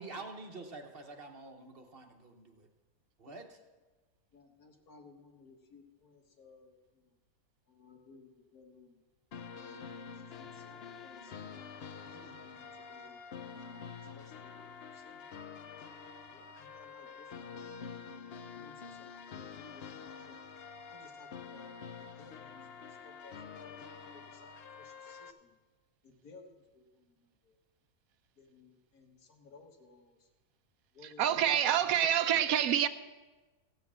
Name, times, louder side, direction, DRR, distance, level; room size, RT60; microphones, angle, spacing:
voice 1, 0.0-2.7 3.2-3.6, right 3 dB, 45° right, 1.0 m, -47 dB
voice 2, 4.3-7.2 7.7-9.0 9.6-9.9 10.1-11.6 12.1-13.2 13.6-15.4 16.3-17.6 18.5-20.4 20.9-21.8 22.2-25.6 26.0-27.6 28.4-30.3 30.9-31.6, left 4 dB, 80° left, 1.9 m, -59 dB
sound 1, 9.3-25.3, left 6 dB, 55° left, 0.7 m, -47 dB
voice 3, 31.0-32.9, right 9 dB, 75° right, 1.0 m, -27 dB
15.5 x 5.7 x 7.4 m
omnidirectional pair, 1.6 m